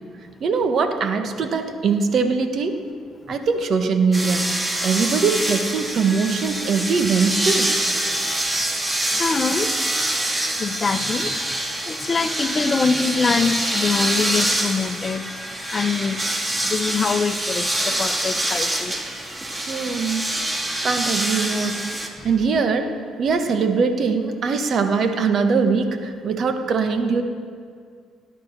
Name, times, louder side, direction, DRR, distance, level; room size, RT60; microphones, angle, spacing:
voice 1, 0.4-2.8 3.3-4.4 4.8-7.7 19.7-20.2 20.6-21.8 22.2-22.9 23.2-27.2, right 5 dB, 55° right, 7 dB, 1.4 m, -21 dB
sound 1, 4.1-22.1, right 1 dB, 20° right, 2.1 m, -25 dB
voice 2, 8.1-8.4 9.1-9.7 10.0-10.2 10.6-11.5 11.8-15.2 15.7-16.2 16.6-19.0, left 5 dB, 35° left, 10 dB, 0.9 m, -24 dB
18.0 x 9.6 x 6.7 m, 2.1 s
supercardioid pair, 75°, 0 cm